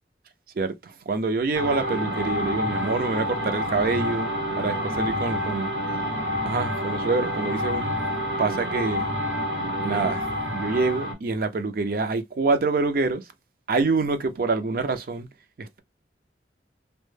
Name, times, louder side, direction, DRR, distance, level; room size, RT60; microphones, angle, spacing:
voice 1, 0.6-5.7 6.4-7.9 8.4-9.1 9.8-13.2 13.7-15.3 15.6-15.8, right 3 dB, 50° right, 0.4 m, -26 dB
sound 1, 1.5-11.1, equal, 75° right, 0.9 m, -28 dB
2.1 x 2.0 x 3.1 m
head